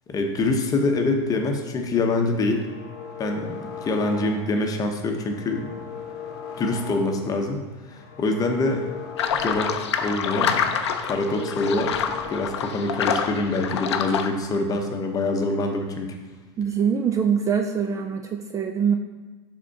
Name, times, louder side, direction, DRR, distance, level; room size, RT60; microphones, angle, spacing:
voice 1, 0.1-2.7 3.2-6.0 6.6-7.6 7.9-8.9 9.3-16.1, left 2 dB, 25° left, 4 dB, 0.9 m, -25 dB
sound 1, 2.3-4.7 5.0-7.4 7.8-10.1 10.4-12.8, left 7 dB, 60° left, 0.9 m, -39 dB
sound 2, 9.2-14.3, left 7 dB, 85° left, 0.5 m, -26 dB
voice 2, 16.6-18.9, right 7 dB, 25° right, 5 dB, 0.4 m, -23 dB
5.0 x 3.7 x 5.6 m, 1.3 s
hypercardioid pair, 105°, 14 cm